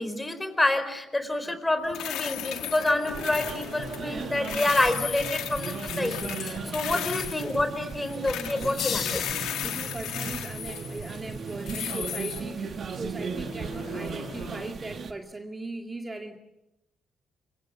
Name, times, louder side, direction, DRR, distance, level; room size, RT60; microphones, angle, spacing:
voice 1, 0.0-9.2, left 2 dB, 15° left, 9 dB, 4.4 m, -28 dB
sound 1, 1.8-14.7, left 11 dB, 85° left, 1.8 m, -37 dB
sound 2, 3.1-15.1, right 5 dB, 55° right, 1.9 m, -37 dB
sound 3, 8.5-10.1, left 8 dB, 70° left, 3.2 m, -34 dB
voice 2, 9.6-16.4, right 2 dB, 20° right, 3 dB, 2.2 m, -39 dB
26.5 x 24.5 x 7.2 m, 0.90 s
cardioid pair, 90°, 0 cm